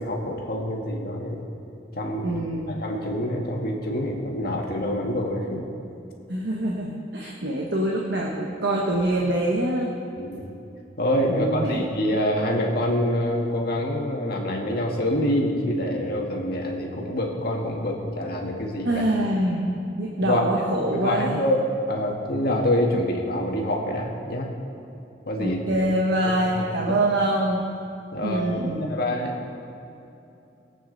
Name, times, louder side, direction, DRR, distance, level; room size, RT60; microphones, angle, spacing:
voice 1, 0.0-1.5 2.0-2.4 2.7-5.6 7.2-7.3 10.2-10.4 11.0-19.0 20.2-20.6 20.9-21.6 21.9-24.5 25.3-25.8 26.5-26.7 28.1-28.4 28.8-29.3, left 1 dB, 55° left, 0 dB, 1.8 m, -26 dB
voice 2, 2.2-2.7 6.3-9.9 11.3-11.8 18.8-21.4 25.4-27.7 28.2-28.9, right 1 dB, 65° right, -2 dB, 1.2 m, -25 dB
21.0 x 8.7 x 4.0 m, 2.8 s
head